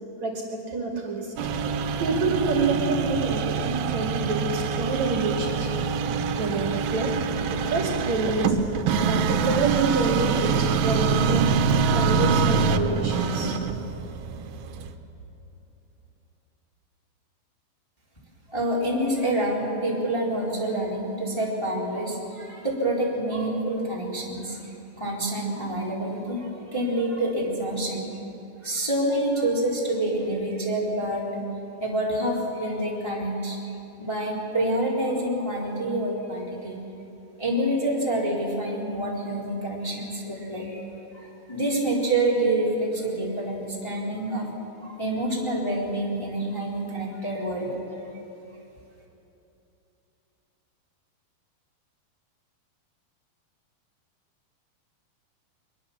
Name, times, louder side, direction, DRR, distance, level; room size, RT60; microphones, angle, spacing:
voice 1, 0.2-1.3 2.0-5.7 6.4-7.1 7.5-8.6 9.0-11.5 11.9-13.5, right 3 dB, 50° right, -1 dB, 3.4 m, -27 dB
sound 1, 1.4-14.9, right 5 dB, 75° right, 2.7 m, -25 dB
voice 2, 18.5-28.1 28.6-31.5 31.8-33.6 34.0-36.8 37.4-40.9 41.1-44.5 44.8-47.8, right 1 dB, 5° left, -5 dB, 3.4 m, -27 dB
23.0 x 22.0 x 7.2 m, 2.9 s
omnidirectional pair, 4.3 m